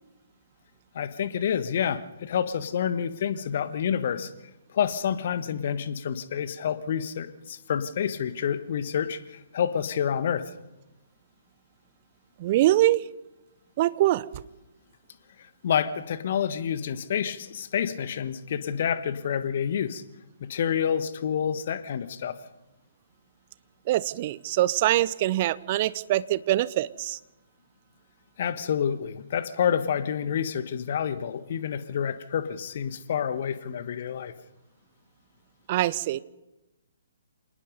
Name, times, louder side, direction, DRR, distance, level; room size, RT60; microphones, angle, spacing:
voice 1, 0.9-4.3 4.7-10.4 15.6-20.0 20.4-22.4 28.4-34.3, left 8 dB, 45° left, 12 dB, 1.4 m, -28 dB
voice 2, 12.4-13.0 13.8-14.3 23.9-27.2 35.7-36.2, right 15 dB, 35° right, 19 dB, 0.7 m, -24 dB
27.0 x 19.0 x 5.4 m, 1.0 s
figure-of-eight pair, 130°, 0 cm